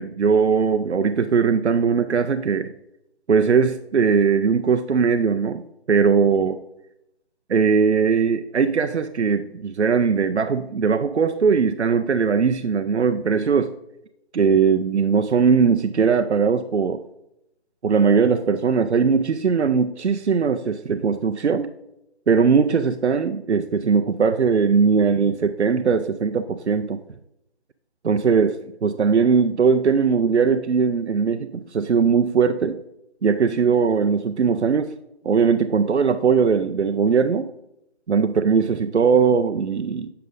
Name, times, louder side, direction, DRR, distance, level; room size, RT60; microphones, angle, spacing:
voice 1, 0.0-2.7 3.3-5.6 5.9-6.6 7.5-13.7 14.3-17.0 17.8-21.7 22.3-27.0 28.0-32.8 33.2-34.9 35.2-37.5 38.1-40.1, right 6 dB, 85° right, 8 dB, 0.6 m, -20 dB
7.8 x 6.7 x 2.5 m, 0.81 s
figure-of-eight pair, 165°, 33 cm